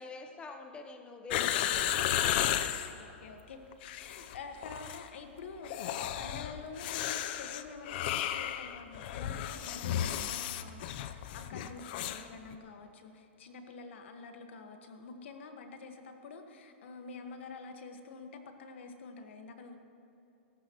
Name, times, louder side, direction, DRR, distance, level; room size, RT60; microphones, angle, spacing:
voice 1, 0.0-3.2, left 3 dB, 15° left, 4 dB, 1.2 m, -47 dB
sound 1, 1.3-2.9 3.7-4.4 4.6-5.0 5.6-12.3 12.5-12.6, left 11 dB, 50° left, 0.8 m, -34 dB
voice 2, 2.9-5.9 6.2-19.8, left 4 dB, 75° left, 5 dB, 1.7 m, -47 dB
28.0 x 14.0 x 3.2 m, 2.9 s
hypercardioid pair, 135°, 7 cm